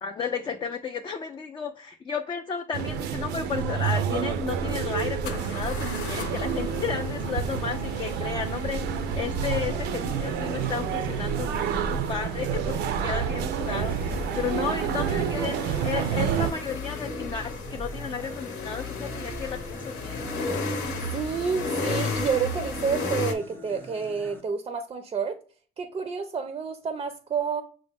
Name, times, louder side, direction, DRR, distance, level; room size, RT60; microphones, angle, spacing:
voice 1, 0.0-8.8 9.1-20.2, left 6 dB, 30° left, 0.4 m, -33 dB
sound 1, 2.7-16.5, right 7 dB, 80° right, 0.5 m, -29 dB
sound 2, 4.1-4.2 5.2-23.3, left 2 dB, 85° left, 1.0 m, -34 dB
sound 3, 8.4-24.4, left 2 dB, 10° left, 0.8 m, -46 dB
voice 2, 21.1-25.4 25.8-27.6, right 6 dB, 30° right, 0.5 m, -29 dB
6.1 x 2.1 x 3.4 m
cardioid pair, 110°, 17 cm